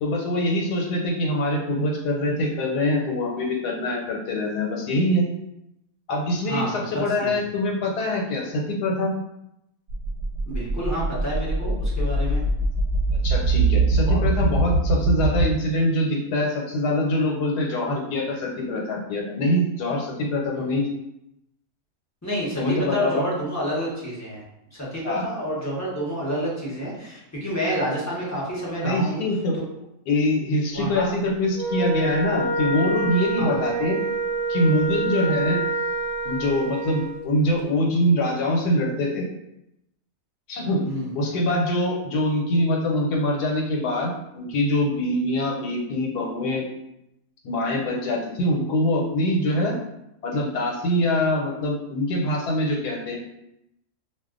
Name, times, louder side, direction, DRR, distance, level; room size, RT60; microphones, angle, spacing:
voice 1, 0.0-5.3 6.1-9.1 13.2-20.8 22.6-23.2 25.0-25.3 28.8-29.5 30.1-34.0 34.5-35.6 36.2-39.2 40.5-40.9 41.1-46.6 47.4-49.7 50.2-53.2, left 1 dB, 85° left, 0 dB, 1.3 m, -24 dB
voice 2, 6.4-7.3 10.5-12.4 14.0-14.2 20.5-20.8 22.2-24.4 24.7-29.2 30.7-31.1 33.4-33.6 40.9-41.2, equal, 15° left, -6 dB, 0.6 m, -29 dB
sound 1, 9.9-15.5, right 2 dB, 85° right, 1.1 m, -23 dB
Wind instrument woodwind instrument, 31.5-37.2, right 2 dB, 60° right, 0.7 m, -27 dB
2.5 x 2.4 x 3.6 m, 0.83 s
omnidirectional pair, 1.7 m